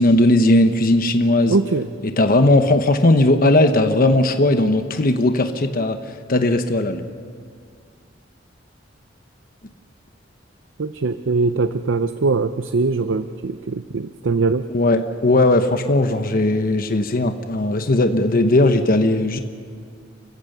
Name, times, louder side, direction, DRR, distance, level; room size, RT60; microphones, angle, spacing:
voice 1, 0.0-1.6 2.0-6.0 6.3-7.0 14.7-19.4, left 2 dB, 50° left, 7 dB, 1.0 m, -17 dB
voice 2, 1.5-1.9 10.8-14.7, right 3 dB, 75° right, 11 dB, 0.6 m, -21 dB
29.5 x 15.5 x 6.7 m, 2.1 s
head